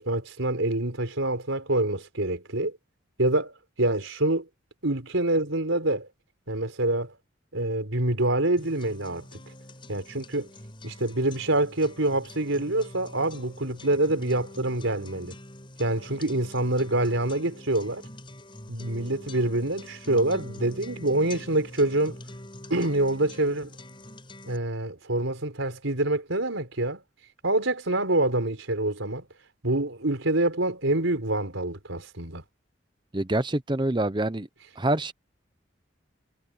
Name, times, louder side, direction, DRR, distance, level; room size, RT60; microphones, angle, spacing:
voice 1, 0.0-2.8 3.2-4.5 4.8-6.1 6.5-7.1 7.5-9.2 9.9-10.5 10.8-15.4 15.8-18.1 18.7-22.2 22.7-23.7 24.4-27.0 27.4-29.2 29.6-32.4, right 2 dB, 85° right, 4.4 m, -26 dB
sound 1, 8.6-24.6, left 1 dB, 25° left, 6.4 m, -45 dB
voice 2, 33.1-34.5 34.8-35.1, right 1 dB, 25° right, 0.9 m, -26 dB
head